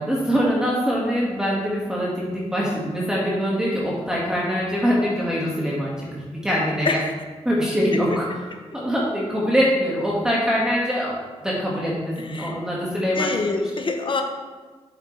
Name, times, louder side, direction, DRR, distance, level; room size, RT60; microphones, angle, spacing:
voice 1, 0.0-6.1 6.4-7.0 7.5-8.3 8.7-11.2 11.4-13.3, equal, 5° right, -5 dB, 1.9 m, -23 dB
voice 2, 12.2-12.6 12.9-14.2, left 3 dB, 45° left, 4 dB, 1.1 m, -26 dB
7.8 x 7.1 x 3.4 m, 1.3 s
cardioid pair, 70°, 12 cm